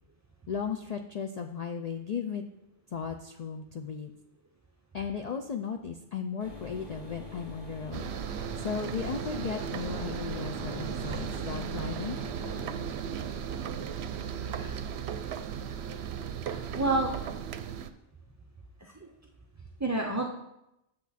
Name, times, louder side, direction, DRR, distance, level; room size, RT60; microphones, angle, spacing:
voice 1, 0.5-2.4 2.9-4.1 4.9-12.2, left 6 dB, 75° left, 4 dB, 0.3 m, -36 dB
sound 1, 6.4-12.6, left 2 dB, 35° left, 3.4 m, -44 dB
sound 2, 7.9-17.9, right 8 dB, 70° right, 0.8 m, -36 dB
voice 2, 16.4-17.1 18.8-19.1 19.8-20.3, right 2 dB, 20° right, 1 dB, 0.4 m, -30 dB
8.4 x 6.5 x 4.1 m, 0.86 s
omnidirectional pair, 1.2 m